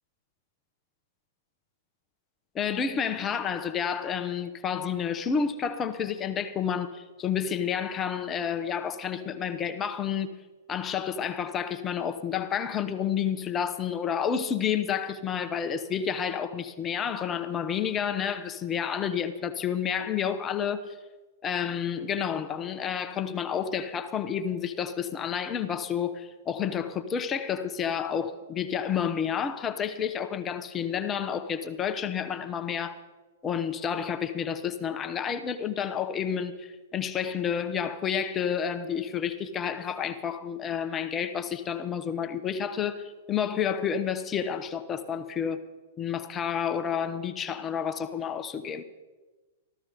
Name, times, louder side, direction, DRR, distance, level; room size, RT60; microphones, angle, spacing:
voice 1, 2.5-10.3 10.7-20.9 21.4-33.0 33.4-45.6 46.0-48.8, left 7 dB, 25° left, 0.9 m, -30 dB
14.5 x 13.5 x 5.1 m
figure-of-eight pair, 105°, 0 cm